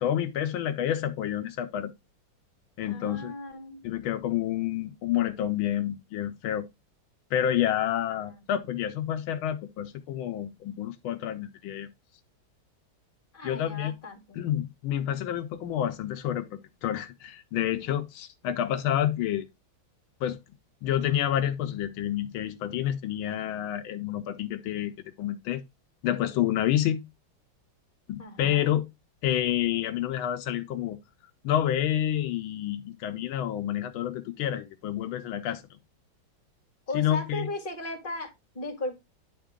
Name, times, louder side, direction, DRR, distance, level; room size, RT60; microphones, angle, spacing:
voice 1, 0.0-1.9 2.8-3.3 3.8-6.7 7.3-11.9 13.4-13.9 14.3-19.5 20.2-20.4 20.8-25.6 26.0-27.0 28.1-28.8 29.2-31.0 31.4-35.8 36.9-37.5, left 11 dB, 85° left, 1.5 m, -29 dB
voice 2, 2.8-3.9 8.2-8.4 13.3-14.4 28.2-28.7 36.9-39.0, left 2 dB, 25° left, 2.3 m, -37 dB
10.5 x 3.7 x 3.6 m
omnidirectional pair, 2.2 m